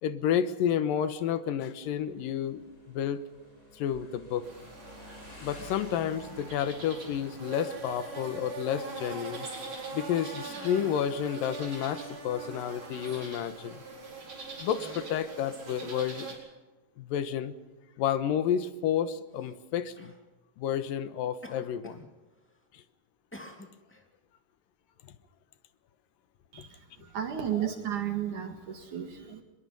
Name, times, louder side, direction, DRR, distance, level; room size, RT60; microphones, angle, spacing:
voice 1, 0.0-3.2 3.7-4.5 5.4-9.5 9.9-13.8 14.6-16.4 17.0-17.5 18.0-20.1 20.6-22.0 22.7-22.8, left 9 dB, 80° left, 2.9 m, -30 dB
Motorcycle, 1.8-10.0, left 1 dB, 25° left, 5.5 m, -53 dB
sound 1, 4.4-16.4, right 3 dB, 35° right, 5.2 m, -42 dB
Cough, 9.8-11.4 12.1-12.2 12.6-13.1 13.9-14.1 14.5-16.4 17.4-17.5 19.3-19.5 19.9-20.2 21.4-22.1 22.4-22.8 23.3-24.1, equal, 5° left, 1.8 m, -51 dB
voice 2, 26.5-29.4, right 10 dB, 65° right, 3.2 m, -34 dB
23.5 x 22.0 x 5.4 m
omnidirectional pair, 3.9 m